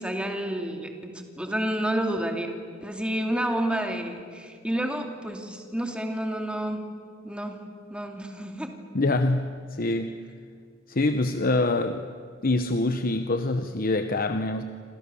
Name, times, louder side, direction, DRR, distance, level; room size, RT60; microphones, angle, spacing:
voice 1, 0.0-2.5 2.8-6.9 7.2-7.6 7.9-8.8, right 1 dB, 5° right, 3 dB, 2.7 m, -30 dB
voice 2, 8.9-10.2 10.9-12.0 12.4-14.6, left 2 dB, 50° left, 8 dB, 1.0 m, -25 dB
28.5 x 26.5 x 7.1 m, 2.1 s
head